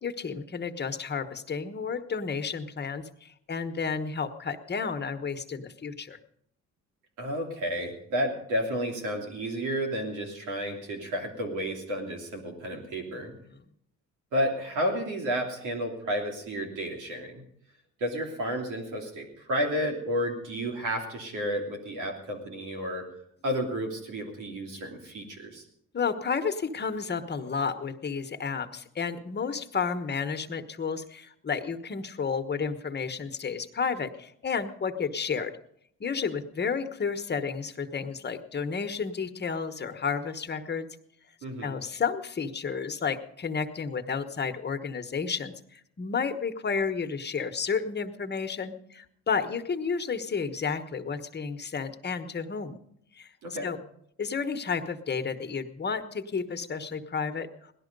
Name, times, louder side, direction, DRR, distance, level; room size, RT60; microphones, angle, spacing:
voice 1, 0.0-6.2 13.1-13.2 13.5-13.6 25.9-35.5 36.0-40.9 41.6-52.8 53.1-53.3 53.6-53.8 54.2-57.5, left 5 dB, 35° left, 8 dB, 1.1 m, -31 dB
voice 2, 7.2-13.3 14.3-17.4 18.0-23.1 23.4-25.6 41.4-41.8 53.4-53.7, equal, 85° right, 2 dB, 3.1 m, -31 dB
17.5 x 12.0 x 5.3 m, 0.71 s
cardioid pair, 90°, 30 cm